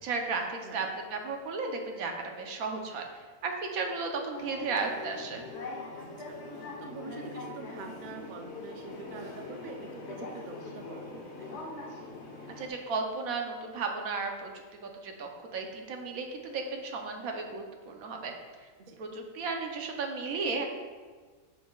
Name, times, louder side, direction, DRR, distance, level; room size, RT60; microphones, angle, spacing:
voice 1, 0.0-3.0 3.4-5.5 12.6-18.3 19.0-20.7, right 4 dB, 90° right, 3 dB, 1.3 m, -34 dB
sound 1, 4.3-12.7, left 2 dB, 55° left, 1.1 m, -42 dB
voice 2, 6.0-11.5 18.8-19.0, right 4 dB, 55° right, 4 dB, 0.5 m, -46 dB
8.2 x 5.9 x 2.3 m, 1.5 s
omnidirectional pair, 1.4 m